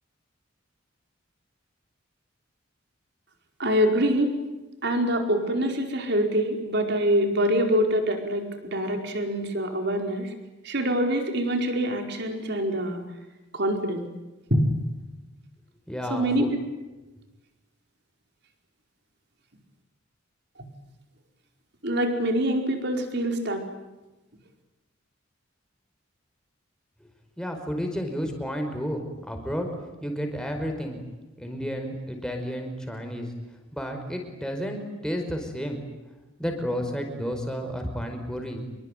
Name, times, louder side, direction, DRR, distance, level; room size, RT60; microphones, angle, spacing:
voice 1, 3.6-4.3 4.8-10.3 10.6-13.0 13.5-14.1 14.5-14.8 16.1-16.6 21.8-23.6, equal, 55° right, 4 dB, 4.9 m, -25 dB
voice 2, 15.9-16.5 27.4-29.7 30.0-31.0 31.4-33.3 33.7-35.8 36.4-38.6, equal, 5° left, 3 dB, 5.1 m, -31 dB
27.0 x 23.0 x 9.3 m, 1.1 s
head